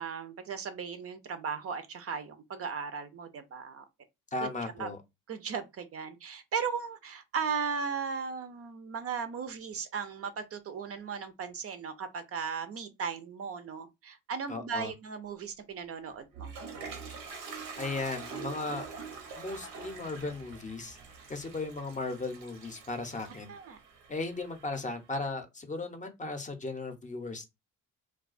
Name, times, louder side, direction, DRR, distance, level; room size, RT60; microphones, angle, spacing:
voice 1, 0.0-3.8 4.4-4.5 4.8-4.9 5.3-16.5 23.5-23.8, right 6 dB, 50° right, 0.4 m, -37 dB
voice 2, 4.3-5.0 14.5-14.9 17.8-18.9 19.3-21.0 21.3-23.5 24.1-27.5, left 3 dB, 25° left, 0.5 m, -36 dB
Toilet flush, 16.1-24.9, right 5 dB, 85° right, 0.8 m, -45 dB
2.3 x 2.2 x 2.4 m
supercardioid pair, 70°, 32 cm